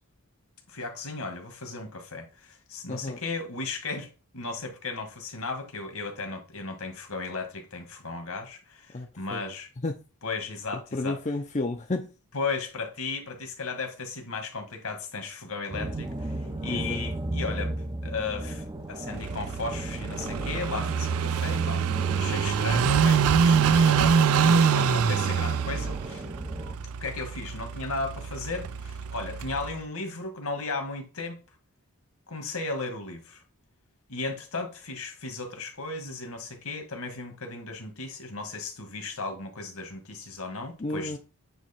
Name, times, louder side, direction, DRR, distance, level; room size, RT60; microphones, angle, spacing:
voice 1, 0.7-4.1 4.3-9.7 10.2-11.2 12.3-21.8 22.2-26.3 27.0-31.4 32.3-33.4 34.1-41.2, left 3 dB, 70° left, 1.8 m, -35 dB
voice 2, 8.9-9.4 9.8-9.9 10.9-12.1 16.7-17.0 40.8-41.2, left 2 dB, 30° left, 0.6 m, -31 dB
sound 1, 15.7-26.8, right 1 dB, 20° right, 0.6 m, -35 dB
Car passing by / Idling, 19.1-29.8, right 6 dB, 75° right, 0.4 m, -25 dB
9.0 x 3.1 x 4.4 m
head